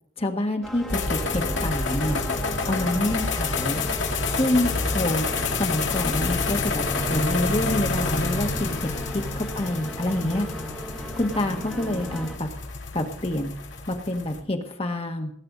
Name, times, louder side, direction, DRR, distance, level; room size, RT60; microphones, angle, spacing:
voice 1, 0.2-2.2 2.7-3.8 4.3-5.3 5.6-6.8 7.1-8.9 9.4-10.5 11.2-12.5 12.9-13.5 13.9-15.3, left 1 dB, 30° left, 4 dB, 1.6 m, -27 dB
sound 1, 0.6-12.4, equal, ahead, 1.3 m, -38 dB
sound 2, 0.9-14.4, left 3 dB, 80° left, 2.0 m, -28 dB
19.0 x 8.8 x 4.1 m, 0.64 s
head